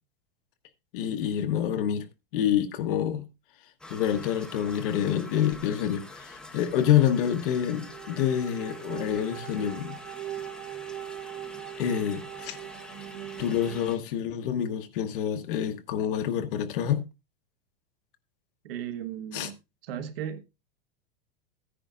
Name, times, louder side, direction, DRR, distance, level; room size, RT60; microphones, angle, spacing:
voice 1, 0.9-2.1 2.3-3.3 3.9-10.0 11.8-12.6 13.4-17.0 19.3-19.5, left 9 dB, 60° left, 1.3 m, -27 dB
sound 1, 3.8-14.0, left 2 dB, 5° left, 0.8 m, -46 dB
sound 2, 7.7-13.8, right 13 dB, 50° right, 0.7 m, -40 dB
voice 2, 18.6-19.6 19.8-20.4, right 9 dB, 75° right, 1.5 m, -35 dB
14.5 x 10.0 x 2.5 m
supercardioid pair, 160°, 30 cm